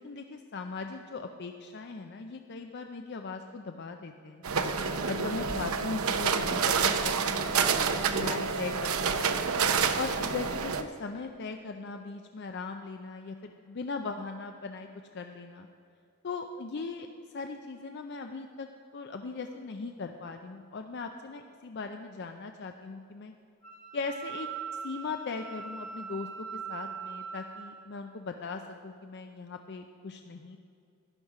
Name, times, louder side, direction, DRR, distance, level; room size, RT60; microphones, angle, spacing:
voice 1, 0.0-4.4 5.1-7.5 8.0-9.3 10.0-15.7 16.2-17.1 17.3-18.7 18.9-23.3 23.9-24.5 24.8-30.6, left 4 dB, 50° left, 5 dB, 0.5 m, -39 dB
sound 1, 4.4-10.8, right 6 dB, 85° right, 0.6 m, -28 dB
Wind instrument woodwind instrument, 23.6-27.7, right 6 dB, 65° right, 2.6 m, -41 dB
12.0 x 11.0 x 4.8 m, 2.5 s
head